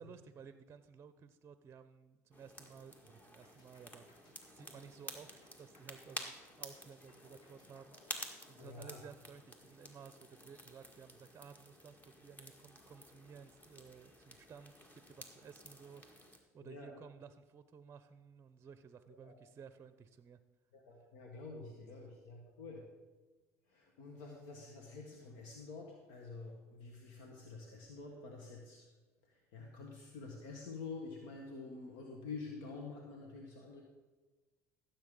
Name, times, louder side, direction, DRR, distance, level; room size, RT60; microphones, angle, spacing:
voice 1, 0.0-8.0 8.5-20.4 21.6-21.8, right 6 dB, 30° right, 12 dB, 0.6 m, -56 dB
sound 1, 2.3-16.4, left 1 dB, 20° left, 1.8 m, -52 dB
sound 2, 3.4-9.6, left 1 dB, 45° left, 2.8 m, -66 dB
voice 2, 8.6-9.0 16.6-17.0 19.1-19.4 20.7-22.9 23.7-28.9 29.2-33.8, left 4 dB, 70° left, 1 dB, 1.5 m, -48 dB
15.0 x 7.5 x 3.8 m, 1.2 s
hypercardioid pair, 70°, 8 cm